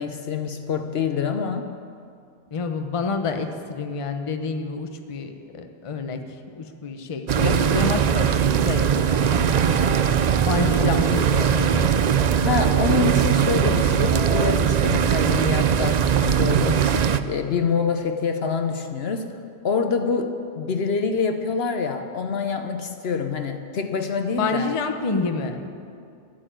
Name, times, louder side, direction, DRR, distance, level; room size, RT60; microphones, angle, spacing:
voice 1, 0.0-1.7 12.4-19.3 19.6-24.7, left 5 dB, 60° left, 7 dB, 0.9 m, -26 dB
voice 2, 2.5-6.2 6.6-9.9 10.4-11.9 24.4-25.7, left 4 dB, 30° left, 6 dB, 0.8 m, -28 dB
sound 1, 7.3-17.2, right 8 dB, 65° right, 0.4 m, -20 dB
sound 2, 9.5-14.5, right 1 dB, 30° right, 1.5 m, -33 dB
12.5 x 8.8 x 9.0 m, 2.4 s
omnidirectional pair, 1.3 m